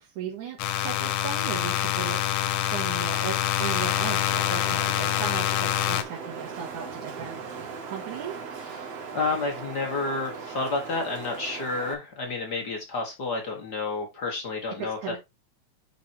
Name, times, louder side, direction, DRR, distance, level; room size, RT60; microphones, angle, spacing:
voice 1, 0.0-2.2 2.7-7.4 7.9-8.3 14.8-15.2, right 8 dB, 85° right, -3 dB, 3.3 m, -36 dB
sound 1, 0.6-6.0, left 12 dB, 85° left, 2.0 m, -26 dB
Wind, 4.3-11.9, right 5 dB, 60° right, 2.4 m, -39 dB
voice 2, 8.6-15.0, left 3 dB, 45° left, 1 dB, 1.6 m, -30 dB
10.5 x 4.3 x 2.8 m, 0.22 s
omnidirectional pair, 3.4 m